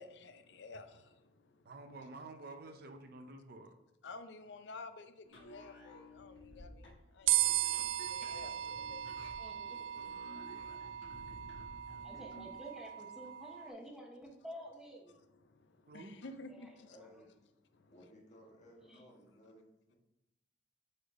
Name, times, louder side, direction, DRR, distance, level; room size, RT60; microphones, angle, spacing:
voice 1, 0.0-1.7 4.0-9.7 10.2-12.1 15.1-17.0 17.7-18.0, left 3 dB, 65° left, 0.5 m, -53 dB
voice 2, 1.6-3.7 15.9-16.2, right 2 dB, 55° right, 0.6 m, -50 dB
sound 1, 5.2-12.6, left 1 dB, 90° left, 1.2 m, -54 dB
sound 2, 7.3-13.7, right 14 dB, 80° right, 0.3 m, -37 dB
voice 3, 9.4-10.0 12.0-15.2 16.6-16.7 17.0-17.2 18.9-19.0, equal, 5° right, 0.9 m, -51 dB
voice 4, 16.8-17.4 17.9-20.0, left 1 dB, 40° left, 1.5 m, -59 dB
7.9 x 3.7 x 3.6 m
head